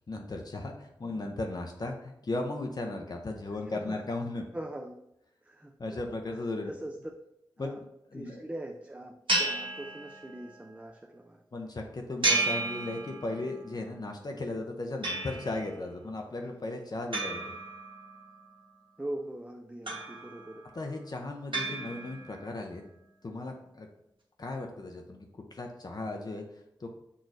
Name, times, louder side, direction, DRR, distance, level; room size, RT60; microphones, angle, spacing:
voice 1, 0.1-4.5 5.8-6.7 7.6-7.8 8.1-8.4 11.5-17.4 20.7-22.8 23.2-23.9 24.4-26.9, left 2 dB, 50° left, 2 dB, 0.6 m, -36 dB
voice 2, 4.5-5.0 5.4-5.7 6.7-7.0 7.6-7.8 8.1-11.4 19.0-20.6 21.7-21.8, right 1 dB, 15° right, 2 dB, 0.4 m, -41 dB
sound 1, 9.3-10.5 12.2-13.5 15.0-15.7 17.1-18.3 19.9-20.6 21.5-22.4, right 2 dB, 70° right, 1.2 m, -32 dB
6.1 x 3.0 x 2.6 m, 0.80 s
cardioid pair, 50°, 9 cm